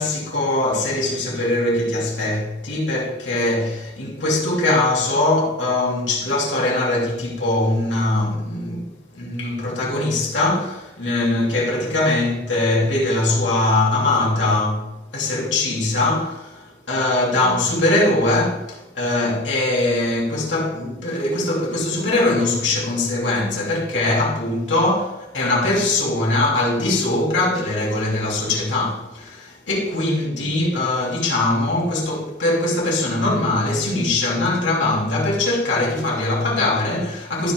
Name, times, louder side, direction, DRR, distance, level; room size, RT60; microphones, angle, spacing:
voice 1, 0.0-37.5, left 2 dB, 85° left, 3.1 m, -21 dB
15.0 x 5.3 x 3.9 m
head